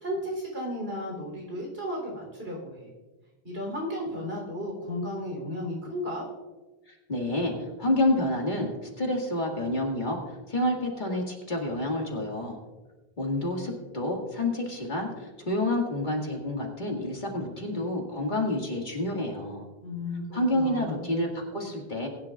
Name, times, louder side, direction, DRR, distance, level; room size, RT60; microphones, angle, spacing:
voice 1, 0.0-2.9 3.4-6.3 19.8-21.0, left 1 dB, 70° right, -1 dB, 3.8 m, -34 dB
voice 2, 6.9-10.2 10.5-12.6 13.2-19.6 20.3-22.1, left 1 dB, 50° left, 0 dB, 2.1 m, -29 dB
20.5 x 10.5 x 2.4 m, 1.2 s
omnidirectional pair, 1.0 m